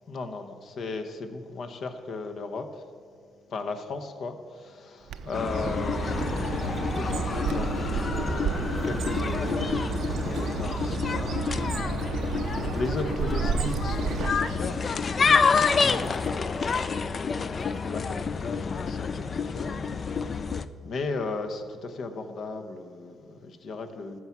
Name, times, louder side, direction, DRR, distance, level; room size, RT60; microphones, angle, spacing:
voice 1, 0.1-2.9 3.5-11.4 11.9-19.9 20.3-20.5 20.8-24.2, left 3 dB, 60° left, 7 dB, 1.0 m, -36 dB
Bird, 5.1-14.8, right 7 dB, 75° right, 0.5 m, -32 dB
sound 1, 5.3-20.7, left 5 dB, 40° left, 0.4 m, -28 dB
sound 2, 6.0-7.3 7.7-10.7 11.0-13.9 14.3-17.3 17.6-17.9, right 2 dB, 15° right, 0.7 m, -48 dB
14.0 x 4.7 x 7.2 m, 2.1 s
cardioid pair, 90°, 0 cm